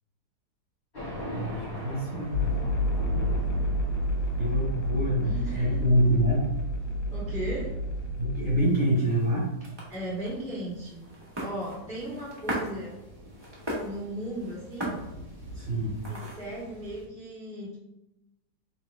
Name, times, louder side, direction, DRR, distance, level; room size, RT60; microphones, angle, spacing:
Thunder, 0.9-17.1, equal, 35° left, 1.8 m, -43 dB
voice 1, 1.3-2.6 4.4-6.5 8.2-9.5 15.5-16.0, equal, 45° right, -6 dB, 1.3 m, -26 dB
sound 1, 2.3-8.5, equal, 75° left, 1.2 m, -29 dB
voice 2, 5.2-5.8 7.1-7.8 9.9-11.0 11.4-13.0 13.8-15.0 16.1-17.8, right 1 dB, 5° left, -7 dB, 1.1 m, -36 dB
sound 2, 8.5-16.6, right 1 dB, 20° right, 0.8 m, -39 dB
5.5 x 2.9 x 2.4 m, 0.93 s
omnidirectional pair, 1.8 m